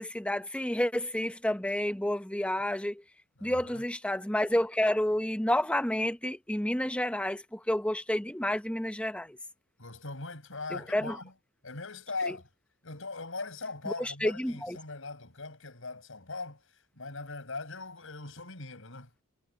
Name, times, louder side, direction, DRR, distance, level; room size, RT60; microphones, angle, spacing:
voice 1, 0.0-3.0 3.4-9.4 10.7-11.2 12.3-12.4 13.9-14.8, left 1 dB, 5° left, 0.9 m, -30 dB
voice 2, 3.4-3.8 9.8-11.3 11.6-12.5 12.8-16.6 17.0-19.1, left 3 dB, 70° left, 5.9 m, -40 dB
head